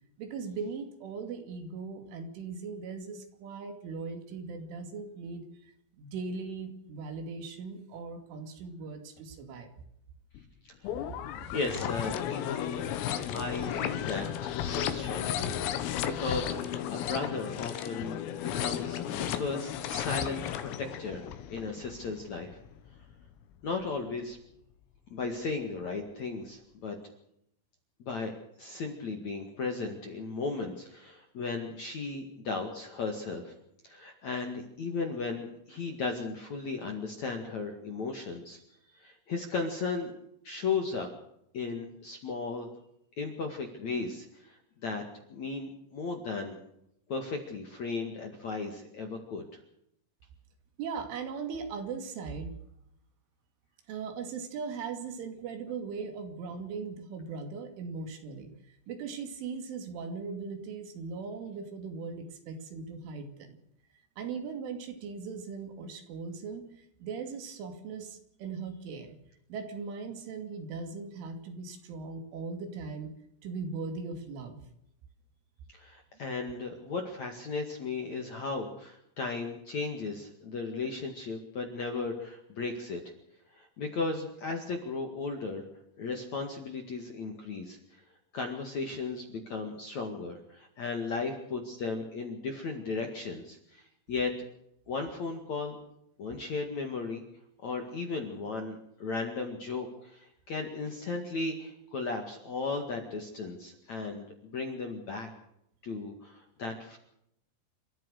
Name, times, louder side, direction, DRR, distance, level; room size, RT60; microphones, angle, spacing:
voice 1, 0.2-5.5 6.0-9.7 50.8-52.5 53.9-58.5 58.9-63.6 64.2-69.2 69.5-73.1 73.4-74.6, right 5 dB, 70° right, 6 dB, 4.9 m, -39 dB
sound 1, 10.3-10.4 10.8-23.3 23.8-23.9, left 10 dB, 85° left, 4.1 m, -34 dB
voice 2, 10.6-11.1 11.5-15.6 15.9-22.6 23.6-24.4 25.1-27.0 28.0-28.3 28.6-33.5 33.8-38.6 38.9-40.1 40.4-41.1 41.5-42.7 43.2-45.0 45.3-46.6 47.1-49.6 75.7-83.0 83.5-85.6 86.0-88.0 88.3-94.3 94.9-95.8 96.2-97.2 97.6-105.3 105.8-107.0, left 4 dB, 50° left, 4 dB, 2.4 m, -36 dB
29.0 x 14.0 x 6.5 m, 0.77 s
omnidirectional pair, 6.0 m